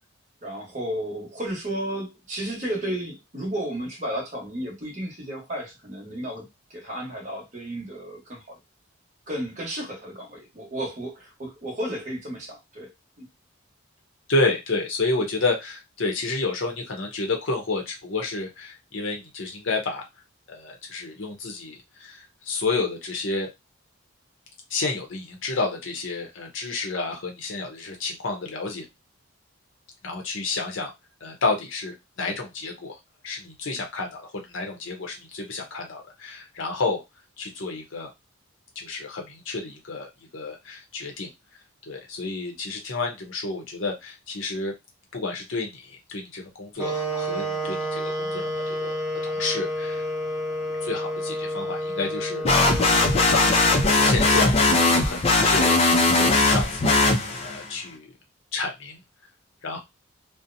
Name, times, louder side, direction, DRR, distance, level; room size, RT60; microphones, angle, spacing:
voice 1, 0.4-8.6 9.3-12.9 13.2-13.3, right 1 dB, 35° right, -2 dB, 1.0 m, -33 dB
voice 2, 14.3-20.0 20.5-23.5 24.7-28.8 30.0-30.9 31.2-33.0 33.2-37.0 37.4-38.1 38.8-41.3 41.9-44.7 45.1-50.0 50.8-53.6 54.0-54.6 55.0-58.1 58.5-59.0 59.6-59.8, left 3 dB, 65° left, 2 dB, 0.7 m, -30 dB
sound 1, 46.8-54.8, equal, 15° right, 0.8 m, -30 dB
sound 2, 52.4-57.7, left 2 dB, 30° left, 0.4 m, -19 dB
2.6 x 2.0 x 2.6 m, 0.21 s
head